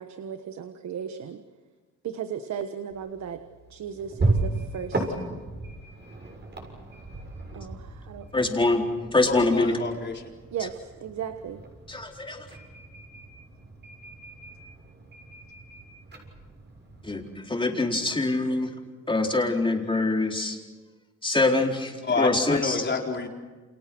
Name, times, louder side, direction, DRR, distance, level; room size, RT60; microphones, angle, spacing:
voice 1, 0.0-1.4 2.0-3.4 3.7-5.0 7.5-8.9 9.3-9.7 10.5-11.6, right 8 dB, 65° right, 8 dB, 1.5 m, -36 dB
sound 1, 2.9-17.3, right 2 dB, 35° right, 7.2 m, -35 dB
voice 2, 8.3-8.8 9.1-9.8 11.9-12.4 17.1-18.7 19.1-20.6 21.2-22.8, left 2 dB, 15° left, 1 dB, 4.2 m, -24 dB
voice 3, 9.3-10.3 22.0-23.3, left 4 dB, 35° left, 1 dB, 4.3 m, -28 dB
29.5 x 28.0 x 6.3 m, 1.3 s
cardioid pair, 90°, 30 cm